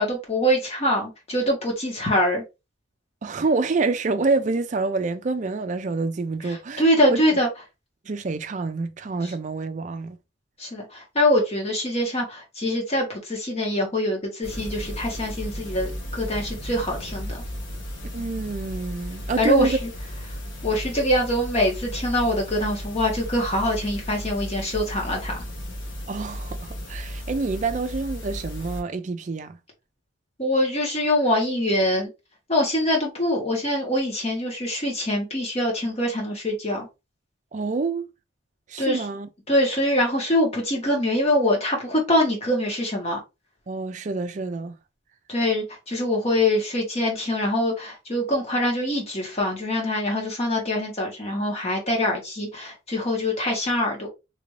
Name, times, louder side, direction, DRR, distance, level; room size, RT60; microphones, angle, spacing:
voice 1, 0.0-2.4 6.8-7.5 10.6-17.4 19.4-19.9 20.6-25.3 30.4-32.1 32.5-36.9 38.8-39.0 39.5-43.2 45.3-54.1, left 1 dB, 30° left, 1.2 m, -24 dB
voice 2, 3.2-6.8 7.1-7.2 8.1-10.2 18.1-19.8 26.1-29.6 37.5-38.1 38.7-39.3 43.7-44.8, right 3 dB, 40° right, 0.4 m, -27 dB
sound 1, 14.4-28.8, equal, 70° left, 1.0 m, -34 dB
3.4 x 2.6 x 3.1 m
head